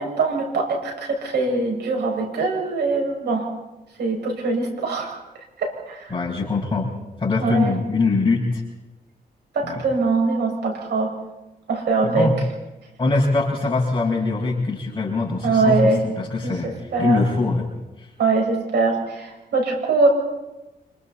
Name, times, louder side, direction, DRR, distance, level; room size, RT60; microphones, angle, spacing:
voice 1, 0.0-3.5 4.0-5.2 5.6-6.1 7.4-7.7 9.5-11.1 11.7-12.3 15.4-16.0 16.4-17.2 18.2-20.1, right 3 dB, 85° right, 1 dB, 6.8 m, -22 dB
voice 2, 6.1-6.9 7.2-8.6 9.6-9.8 12.0-12.4 13.0-17.7 18.0-18.1, left 3 dB, 25° left, -6 dB, 5.6 m, -22 dB
27.5 x 25.0 x 4.3 m, 1.0 s
cardioid pair, 95°, 17 cm